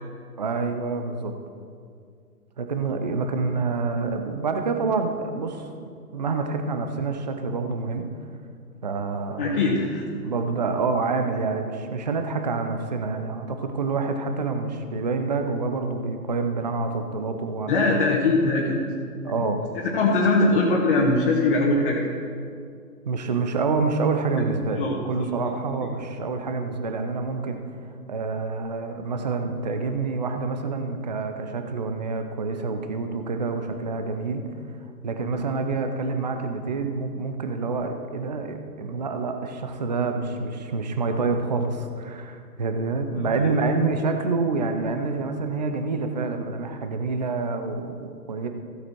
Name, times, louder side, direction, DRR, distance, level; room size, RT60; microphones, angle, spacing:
voice 1, 0.4-1.3 2.6-5.7 6.1-8.1 8.8-9.8 10.2-18.0 19.2-19.7 23.1-27.6 28.1-34.4 35.0-48.5, right 4 dB, 30° right, 6 dB, 0.5 m, -27 dB
voice 2, 9.4-10.1 17.7-18.8 19.9-22.0 24.8-24.9 25.2-25.3, left 2 dB, 35° left, -4 dB, 1.7 m, -21 dB
15.0 x 8.0 x 4.6 m, 2.3 s
hypercardioid pair, 145°, 48 cm